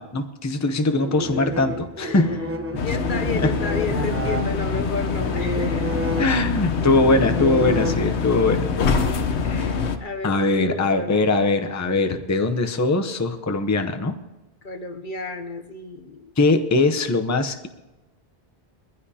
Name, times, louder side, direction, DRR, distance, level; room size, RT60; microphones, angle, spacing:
voice 1, 0.0-2.3 3.4-3.5 6.2-8.7 10.2-14.1 16.4-17.7, left 2 dB, 20° left, 6 dB, 0.7 m, -21 dB
sound 1, 1.0-8.5, equal, 15° right, 0.8 m, -30 dB
voice 2, 2.0-2.5 2.8-6.1 8.8-9.1 9.4-11.3 14.6-16.3, left 4 dB, 50° left, 6 dB, 0.9 m, -32 dB
sound 2, 2.8-10.0, left 5 dB, 75° left, 1.2 m, -25 dB
22.0 x 15.0 x 2.8 m, 1.1 s
omnidirectional pair, 1.1 m